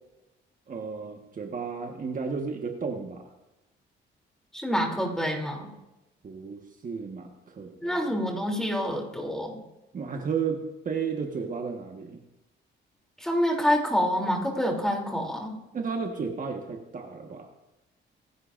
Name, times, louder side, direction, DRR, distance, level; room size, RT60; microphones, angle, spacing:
voice 1, 0.7-3.3 6.2-8.0 9.9-12.2 15.7-17.5, right 5 dB, 45° right, 3 dB, 1.4 m, -33 dB
voice 2, 4.5-5.7 7.8-9.6 13.2-15.6, equal, 5° left, 0 dB, 3.1 m, -27 dB
24.5 x 11.0 x 2.6 m, 0.99 s
cardioid pair, 90°, 20 cm